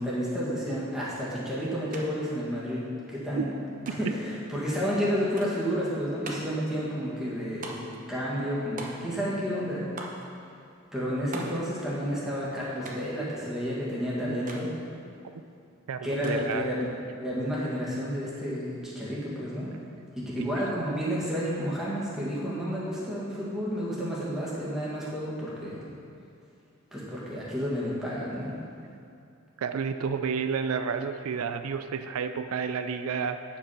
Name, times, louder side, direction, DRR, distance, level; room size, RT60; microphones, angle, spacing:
voice 1, 0.0-3.5 3.9-9.8 10.9-14.7 16.0-16.9 17.2-19.7 20.2-25.9 26.9-28.5, equal, ahead, -8 dB, 1.7 m, -31 dB
Wallet drop, 1.9-2.1 2.3-3.1 3.9-4.3 5.4-5.7 6.2-6.6 7.6-8.0 8.8-9.3 10.0-10.3 11.3-11.7 12.8-13.2 14.5-14.7 16.2-16.6, right 2 dB, 40° right, 0.9 m, -41 dB
voice 2, 15.9-16.7 20.4-20.5 29.6-33.6, right 6 dB, 90° right, 9 dB, 0.4 m, -31 dB
9.2 x 5.4 x 5.6 m, 2.5 s
head